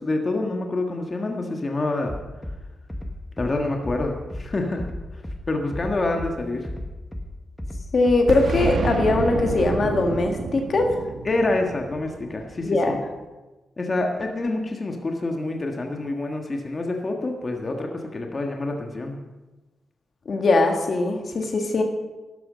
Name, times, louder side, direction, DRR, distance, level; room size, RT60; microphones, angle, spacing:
voice 1, 0.0-2.1 3.4-4.8 5.5-6.7 11.2-13.0 13.8-19.2, left 2 dB, 35° left, 2 dB, 1.6 m, -27 dB
Bass drum, 2.1-2.6 2.9-3.5 3.8-4.4 4.8-5.4 5.7-6.3 6.6-7.3 7.6-8.2 8.5-9.1 9.5-9.6, left 1 dB, 5° left, 1.3 m, -33 dB
voice 2, 7.9-10.9 12.6-13.0 20.3-21.8, left 2 dB, 50° left, 3 dB, 1.7 m, -21 dB
Boom, 8.3-13.0, right 4 dB, 65° right, 1.1 m, -29 dB
12.5 x 12.0 x 5.2 m, 1.1 s
cardioid pair, 95°, 0 cm